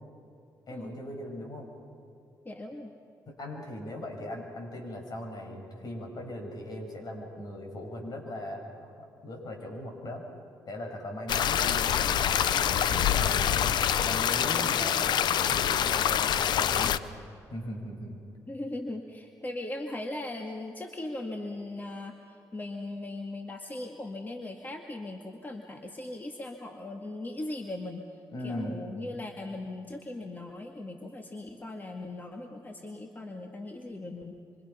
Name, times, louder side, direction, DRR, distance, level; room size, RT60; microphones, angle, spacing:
voice 1, 0.7-1.7 3.3-10.2 10.7-13.7 14.0-15.0 15.3-17.1 17.5-18.2 28.3-28.8, left 1 dB, 55° left, 2 dB, 6.8 m, -39 dB
voice 2, 2.4-2.9 18.5-34.4, left 2 dB, 25° left, 2 dB, 2.1 m, -39 dB
sound 1, 11.3-17.0, left 9 dB, 70° left, 0.7 m, -26 dB
26.5 x 25.5 x 5.8 m, 2.6 s
cardioid pair, 70°, 8 cm